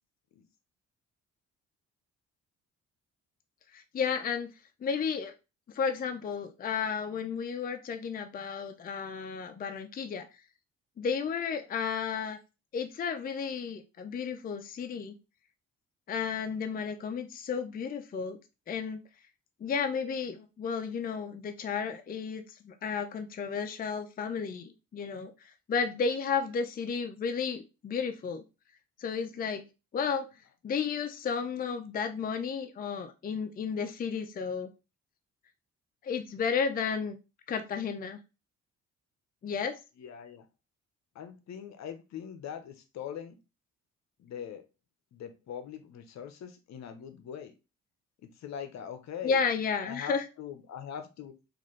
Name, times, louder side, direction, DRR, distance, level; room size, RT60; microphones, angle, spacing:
voice 1, 3.7-4.5 4.8-5.3 5.7-10.3 11.0-12.4 12.7-15.1 16.1-18.4 18.7-19.0 19.6-28.4 29.0-29.6 29.9-30.3 30.6-34.7 36.0-37.2 37.5-38.2 39.4-39.8 49.2-50.2, left 6 dB, 30° left, 7 dB, 0.5 m, -33 dB
voice 2, 40.0-40.5 41.1-43.4 44.2-44.6 45.1-47.5 48.2-49.4 49.8-51.3, left 8 dB, 65° left, 9 dB, 0.7 m, -42 dB
4.0 x 2.5 x 3.1 m, 0.29 s
cardioid pair, 90°, 30 cm